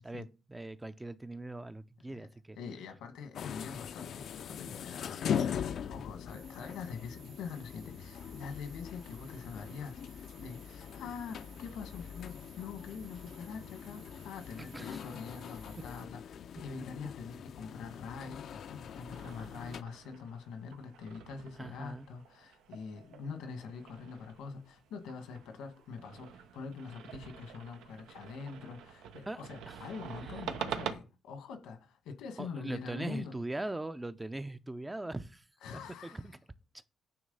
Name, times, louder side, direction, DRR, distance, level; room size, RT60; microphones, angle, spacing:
voice 1, 0.0-2.6 14.6-15.0 21.6-22.1 29.3-29.4 29.7-29.8 32.4-35.4 36.1-36.3, right 2 dB, 15° right, 0.5 m, -40 dB
voice 2, 2.6-33.3 35.6-36.3, left 5 dB, 90° left, 1.6 m, -44 dB
sound 1, 3.3-19.8, left 8 dB, 65° left, 0.5 m, -41 dB
sound 2, 6.3-16.0, right 7 dB, 70° right, 1.1 m, -59 dB
sound 3, 18.9-30.9, right 8 dB, 90° right, 0.8 m, -46 dB
9.4 x 3.2 x 5.4 m
cardioid pair, 90°, 0 cm